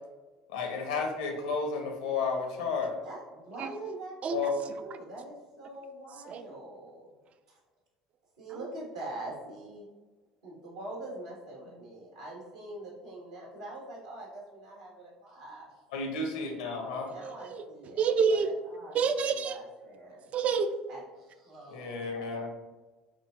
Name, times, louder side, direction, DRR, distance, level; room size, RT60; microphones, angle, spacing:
voice 1, 0.5-3.0 4.3-4.5 15.9-17.1 21.7-22.5, left 4 dB, 75° left, 3 dB, 0.8 m, -32 dB
voice 2, 3.0-7.1 7.5-7.6 8.4-9.9 10.4-15.7 17.1-19.0 19.3-20.3 20.9-22.0, right 2 dB, 80° right, -3 dB, 1.4 m, -44 dB
voice 3, 17.2-17.6 18.0-18.5 18.9-19.6 20.3-20.7, right 6 dB, 40° right, 10 dB, 0.4 m, -27 dB
7.1 x 2.7 x 2.4 m, 1.2 s
figure-of-eight pair, 65°, 3 cm